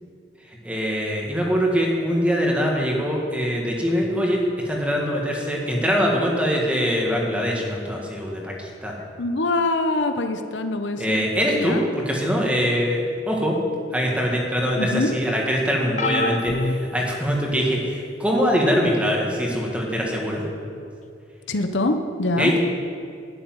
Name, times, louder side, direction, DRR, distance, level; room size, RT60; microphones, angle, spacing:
voice 1, 0.6-8.9 11.0-13.6 13.9-20.4 22.4-22.6, equal, 5° right, -1 dB, 1.9 m, -23 dB
voice 2, 9.2-11.3 11.5-11.8 14.8-15.1 21.5-22.5, left 2 dB, 85° left, 7 dB, 0.9 m, -24 dB
sound 1, 16.0-17.8 18.5-18.8 20.1-20.2, left 3 dB, 40° left, 0.7 m, -28 dB
12.0 x 7.2 x 9.1 m, 2.5 s
head